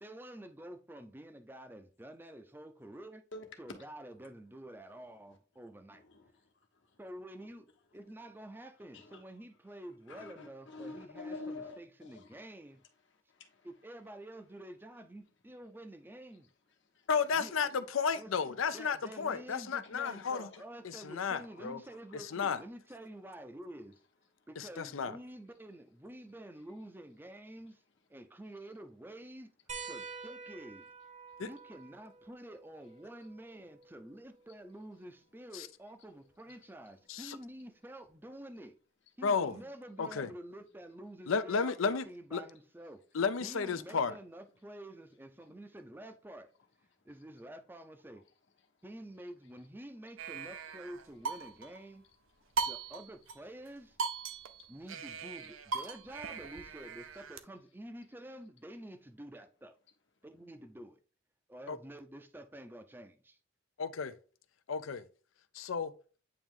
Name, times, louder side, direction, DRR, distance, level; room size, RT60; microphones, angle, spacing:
voice 1, 0.0-3.2 3.6-6.0 7.0-12.8 13.6-16.5 17.3-18.5 18.7-24.0 24.5-27.8 28.1-29.5 29.9-30.9 31.4-38.7 39.2-43.0 43.4-46.5 47.0-48.3 48.8-52.0 52.7-54.0 54.7-59.8 60.2-61.0 61.5-63.4, right 1 dB, 10° right, 0.5 m, -49 dB
voice 2, 3.3-3.8 4.2-4.3 5.9-6.7 7.4-7.6 8.9-9.2 10.1-12.4 13.0-13.7 16.8-17.1 19.8-20.2 20.5-20.6 21.4-22.2 24.4-24.5 36.6-36.7 52.4-52.6 54.6-54.7, left 3 dB, 65° left, 1.2 m, -49 dB
voice 3, 17.1-20.5 20.8-21.8 22.1-22.6 24.6-25.2 31.4-31.5 35.5-35.7 37.1-37.4 39.2-39.6 40.0-40.3 41.3-42.0 42.3-42.4 43.1-44.2 61.7-61.8 63.8-64.1 64.7-65.1 65.5-65.9, left 5 dB, 80° left, 0.5 m, -33 dB
sound 1, 29.7-34.8 36.3-36.4 38.1-38.2, right 5 dB, 35° right, 0.8 m, -49 dB
sound 2, 50.2-51.8 52.6-53.4 53.7-53.8 54.0-57.4, right 5 dB, 85° right, 0.6 m, -39 dB
8.7 x 3.0 x 3.6 m
head